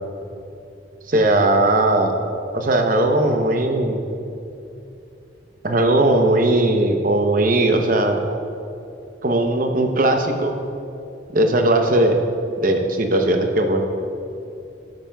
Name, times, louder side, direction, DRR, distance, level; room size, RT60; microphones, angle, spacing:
voice 1, 1.1-2.2 2.5-4.0 5.6-8.2 9.2-10.5 11.3-12.2 12.6-13.8, right 1 dB, 45° right, 4 dB, 0.8 m, -18 dB
12.5 x 12.0 x 2.3 m, 2.7 s
head